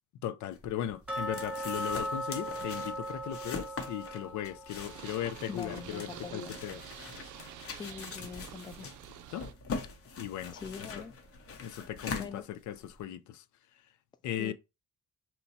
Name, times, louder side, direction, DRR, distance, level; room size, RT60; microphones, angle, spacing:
voice 1, 0.2-6.8 9.3-9.4 10.2-10.5 11.6-13.4 14.2-14.5, left 11 dB, 75° left, 0.5 m, -37 dB
sound 1, 0.5-13.0, left 5 dB, 50° left, 0.8 m, -43 dB
sound 2, 1.1-7.9 8.2-8.3 8.8-8.9 9.5-9.6, equal, 5° right, 1.1 m, -40 dB
Purr, 4.7-9.5, right 11 dB, 80° right, 0.5 m, -48 dB
voice 2, 5.5-6.5 7.7-8.9 10.5-11.1 12.2-12.4 14.4-14.5, left 6 dB, 15° left, 0.3 m, -43 dB
2.9 x 2.2 x 4.1 m
cardioid pair, 90°, 30 cm